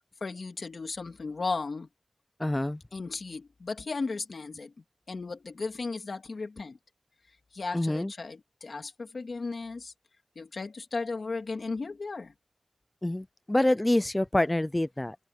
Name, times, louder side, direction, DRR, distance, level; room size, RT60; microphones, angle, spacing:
voice 1, 0.2-1.9 2.9-4.7 5.1-6.8 7.5-9.9 10.4-12.3, left 3 dB, 80° left, 2.7 m, -35 dB
voice 2, 2.4-2.8 7.7-8.1 13.0-15.2, left 1 dB, 20° left, 0.5 m, -26 dB
wide cardioid pair, 60°, 0 cm